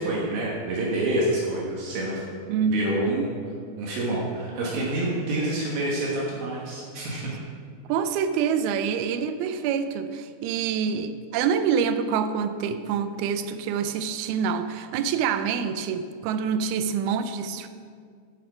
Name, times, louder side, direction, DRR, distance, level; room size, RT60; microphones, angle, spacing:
voice 1, 0.0-2.2 2.7-3.4 3.8-7.3, right 1 dB, 70° right, -4 dB, 3.0 m, -27 dB
voice 2, 2.5-3.3 7.9-17.7, right 6 dB, 90° right, 10 dB, 2.5 m, -26 dB
13.5 x 6.0 x 4.9 m, 2.1 s
omnidirectional pair, 4.3 m